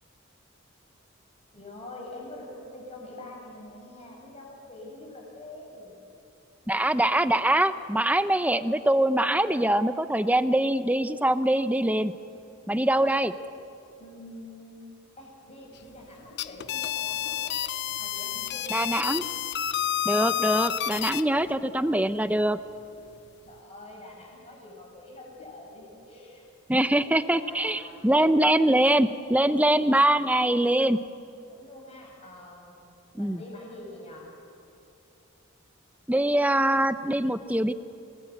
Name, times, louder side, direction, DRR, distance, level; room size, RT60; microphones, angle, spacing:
voice 1, 1.5-5.9 14.0-14.9 15.2-17.6 17.9-19.0 23.4-26.5 26.9-28.4 29.5-29.6 31.5-32.8 33.1-34.3, left 1 dB, 30° left, -1 dB, 7.5 m, -45 dB
voice 2, 6.7-12.1 12.7-13.3 18.7-19.2 20.0-22.6 26.7-31.0 33.1-33.4 36.1-37.7, right 1 dB, 5° right, 11 dB, 0.7 m, -23 dB
sound 1, 16.2-21.2, left 11 dB, 55° left, 0.7 m, -29 dB
29.5 x 20.0 x 8.7 m, 2.6 s
head